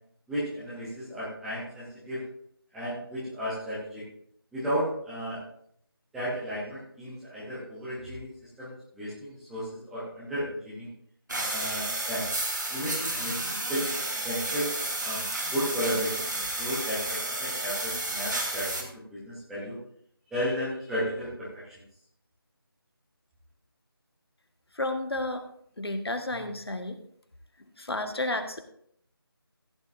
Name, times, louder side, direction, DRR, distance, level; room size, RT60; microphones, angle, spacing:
voice 1, 0.3-2.2 2.7-4.0 4.5-5.4 6.1-8.3 8.6-10.9 11.5-12.3 12.7-13.9 14.2-15.2 15.5-19.8 20.3-21.5, equal, ahead, -10 dB, 0.8 m, -34 dB
sound 1, 11.3-18.8, right 2 dB, 50° right, 2.4 m, -31 dB
voice 2, 24.7-25.5 25.8-27.0 27.8-28.6, left 2 dB, 75° left, 6 dB, 1.7 m, -31 dB
15.0 x 9.6 x 2.7 m, 0.67 s
figure-of-eight pair, 170°, 13 cm